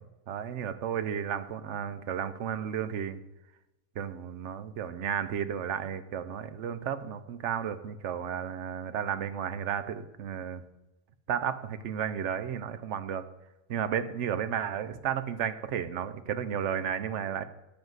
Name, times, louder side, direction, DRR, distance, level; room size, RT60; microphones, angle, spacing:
voice 1, 0.3-3.2 4.0-10.6 11.3-13.2 13.7-17.4, right 8 dB, 65° right, 12 dB, 0.9 m, -33 dB
9.5 x 7.3 x 4.0 m, 0.95 s
omnidirectional pair, 1.5 m